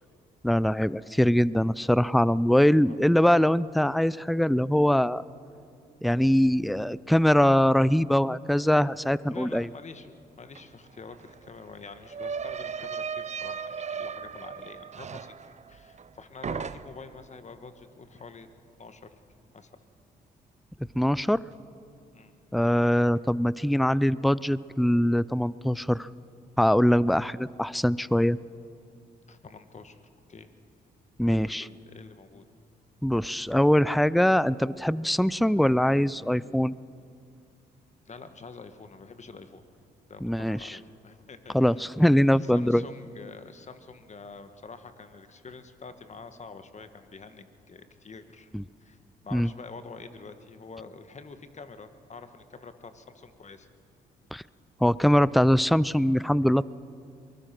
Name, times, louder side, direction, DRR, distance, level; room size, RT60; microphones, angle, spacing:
voice 1, 0.4-5.2 6.0-9.7 20.9-21.4 22.5-26.1 26.6-28.4 31.2-31.6 33.0-36.8 40.2-40.8 41.5-42.8 48.5-48.6 49.3-49.5 54.3-54.4 54.8-56.6, equal, ahead, 20 dB, 0.4 m, -22 dB
voice 2, 9.3-18.5 18.8-19.2 19.5-19.7 22.1-22.4 29.3-30.0 30.3-30.5 31.2-32.4 38.0-39.6 40.1-48.5 48.8-49.0 49.2-53.7, left 4 dB, 40° left, 9 dB, 1.7 m, -46 dB
sound 1, 10.5-10.6 10.9-16.1 16.4-17.2, right 6 dB, 40° right, 0.7 m, -37 dB
23.5 x 20.5 x 6.1 m, 2.5 s
supercardioid pair, 60°, 18 cm